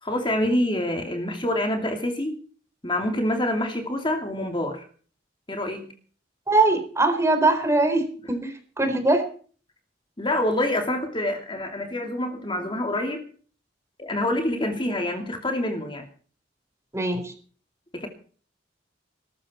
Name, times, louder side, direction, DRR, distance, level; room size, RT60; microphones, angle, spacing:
voice 1, 0.0-2.4 2.8-4.9 5.5-5.9 10.2-13.2 14.0-16.1 17.9-18.1, left 1 dB, 25° left, 4 dB, 2.7 m, -26 dB
voice 2, 6.5-9.2 16.9-17.3, right 2 dB, 15° right, 6 dB, 4.1 m, -22 dB
20.5 x 13.5 x 4.4 m, 0.42 s
head